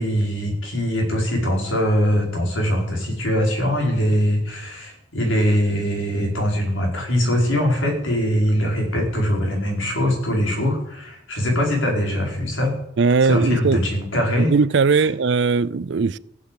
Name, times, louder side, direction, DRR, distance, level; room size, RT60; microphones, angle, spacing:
voice 1, 0.0-12.7 13.2-14.5 14.9-15.1, equal, 80° left, 4.8 m, -22 dB
voice 2, 13.0-13.8 14.4-16.2, right 4 dB, 65° right, 0.5 m, -19 dB
15.0 x 7.8 x 8.5 m
head